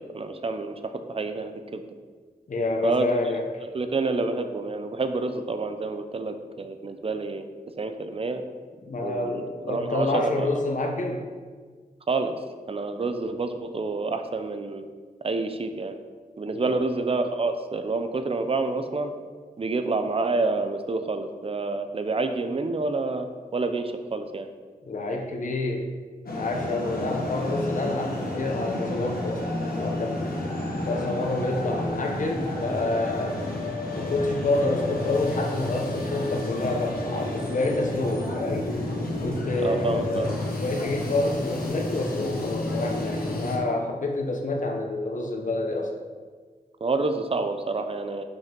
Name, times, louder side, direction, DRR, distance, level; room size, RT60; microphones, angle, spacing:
voice 1, 0.0-1.8 2.8-3.1 3.7-7.4 7.8-8.4 9.0-9.4 9.7-10.5 12.1-12.3 12.7-14.9 15.2-16.0 16.4-19.1 19.6-23.3 23.5-24.5 39.6-40.4 46.8-48.2, right 3 dB, 40° right, 8 dB, 0.6 m, -28 dB
voice 2, 2.5-3.5 8.8-11.3 16.5-16.7 24.9-25.9 26.4-30.3 30.8-33.4 34.0-38.7 39.2-45.9, left 2 dB, 55° left, 2 dB, 1.0 m, -28 dB
sound 1, 26.3-43.6, left 1 dB, 75° left, 1.4 m, -31 dB
5.6 x 5.5 x 5.3 m, 1.5 s
wide cardioid pair, 85°, 15 cm